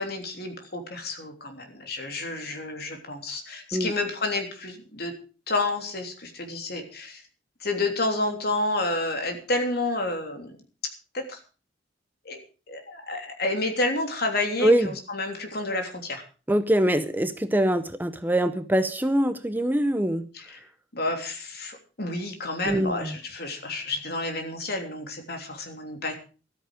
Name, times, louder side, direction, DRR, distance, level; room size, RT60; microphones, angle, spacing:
voice 1, 0.0-5.1 5.5-7.2 7.6-10.5 11.1-11.4 12.2-12.4 12.7-16.2 20.3-20.6 20.9-26.1, left 2 dB, 55° left, 4 dB, 3.3 m, -30 dB
voice 2, 16.5-20.3 22.6-23.2, right 1 dB, 10° right, 10 dB, 0.7 m, -23 dB
14.0 x 13.0 x 5.0 m, 0.36 s
head